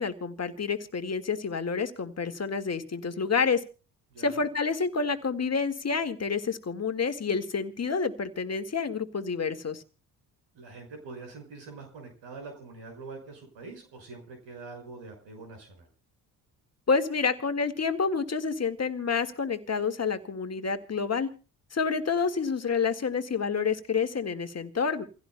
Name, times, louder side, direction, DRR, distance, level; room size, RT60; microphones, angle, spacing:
voice 1, 0.0-3.6 4.2-9.8 16.9-21.3 21.7-25.0, left 5 dB, 30° left, 8 dB, 1.9 m, -28 dB
voice 2, 4.1-4.4 10.5-15.9, right 3 dB, 65° right, 4 dB, 5.7 m, -44 dB
28.5 x 16.0 x 2.2 m, 0.34 s
hypercardioid pair, 55°, 47 cm